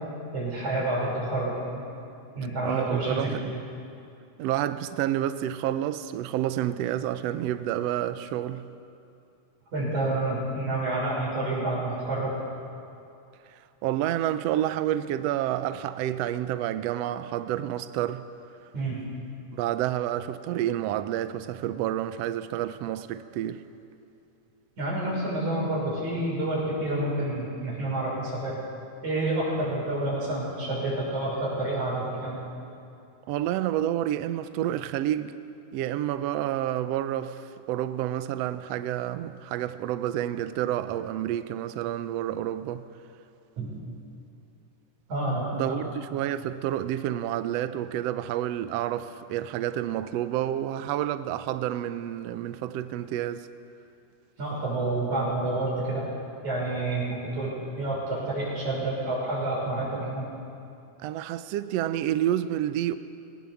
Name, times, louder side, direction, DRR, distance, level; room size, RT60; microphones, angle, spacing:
voice 1, 0.3-1.8 2.4-3.6 9.7-12.4 18.7-19.0 24.8-28.6 29.0-32.4 43.6-43.7 45.1-45.8 46.1-46.2 54.4-56.1 56.4-60.2, right 2 dB, 65° right, 7.8 m, -29 dB
voice 2, 2.6-3.6 4.4-8.7 13.5-18.2 19.5-23.6 33.3-35.3 35.7-42.8 45.5-53.5 61.0-62.9, right 12 dB, 80° right, 1.4 m, -29 dB
20.5 x 19.5 x 7.1 m
omnidirectional pair, 3.7 m